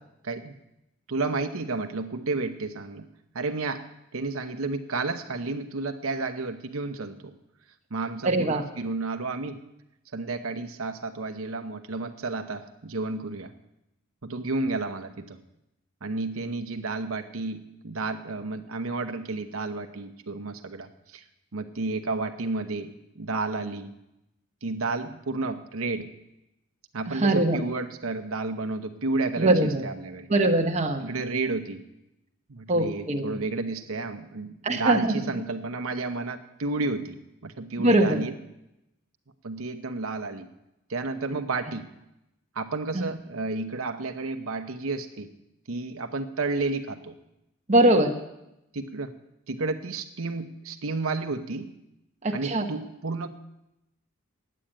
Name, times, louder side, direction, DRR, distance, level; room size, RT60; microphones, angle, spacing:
voice 1, 0.2-0.5 1.1-3.1 3.3-3.9 4.1-7.3 7.9-9.6 10.1-13.5 14.2-15.4 16.0-21.2 21.5-23.9 24.6-26.1 26.9-30.3 31.0-31.8 32.5-37.2 37.4-38.3 39.4-40.5 40.9-41.9 42.5-45.3 45.7-47.2 48.7-49.1 49.5-51.7 52.3-53.3, right 3 dB, 75° right, 8 dB, 0.9 m, -31 dB
voice 2, 8.2-8.6 27.1-27.6 29.4-29.8 30.3-31.0 32.7-33.4 34.6-35.4 37.8-38.2 42.9-43.1 47.7-48.2 52.2-52.7, right 1 dB, 30° right, 3 dB, 1.1 m, -22 dB
10.0 x 8.7 x 8.9 m, 0.88 s
head